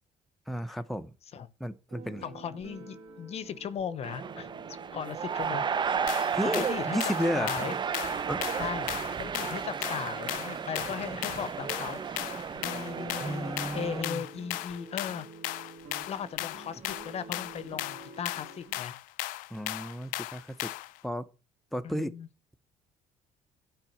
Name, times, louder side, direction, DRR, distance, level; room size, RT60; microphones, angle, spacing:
voice 1, 0.5-1.1 1.6-2.3 6.3-7.8 8.3-8.6 13.2-14.2 19.5-20.7 21.0-21.3 21.7-22.1, equal, ahead, 0.8 m, -33 dB
sound 1, 1.9-18.8, right 3 dB, 60° right, 3.1 m, -48 dB
voice 2, 2.2-4.5 4.9-5.8 6.4-7.0 7.3-7.7 8.6-8.9 9.2-12.2 12.5-15.3 16.1-18.9 21.8-22.3, left 8 dB, 50° left, 0.8 m, -37 dB
sound 2, 4.0-14.0, right 6 dB, 35° right, 0.6 m, -33 dB
sound 3, 6.1-21.0, left 18 dB, 85° left, 0.4 m, -37 dB
9.1 x 4.9 x 7.1 m
cardioid pair, 90°, 14 cm